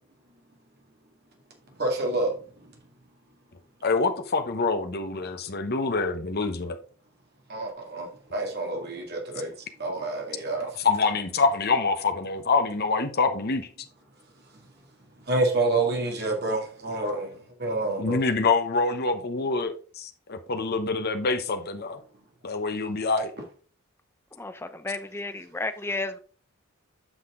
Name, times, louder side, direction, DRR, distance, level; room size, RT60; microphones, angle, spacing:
voice 1, 1.8-2.3 7.5-9.5 9.8-10.7 15.3-17.3 17.6-18.2, right 2 dB, 50° right, 1.9 m, -27 dB
voice 2, 3.8-6.8 10.6-13.7 18.0-22.0 22.4-23.3, left 4 dB, 45° left, 0.9 m, -26 dB
voice 3, 24.4-26.2, left 2 dB, 10° left, 0.5 m, -32 dB
8.0 x 5.8 x 3.6 m
head